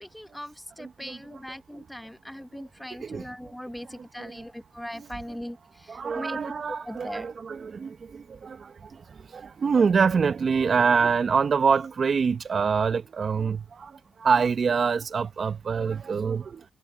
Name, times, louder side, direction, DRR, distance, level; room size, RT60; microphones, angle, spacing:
voice 1, 0.0-5.6 6.1-6.4 6.9-7.3, equal, 5° left, 1.3 m, -39 dB
voice 2, 0.8-1.4 1.7-1.9 2.5-2.6 2.9-3.3 3.8-4.4 4.9-5.4 5.9-16.6, right 5 dB, 45° right, 1.0 m, -26 dB
cardioid pair, 90°, 0 cm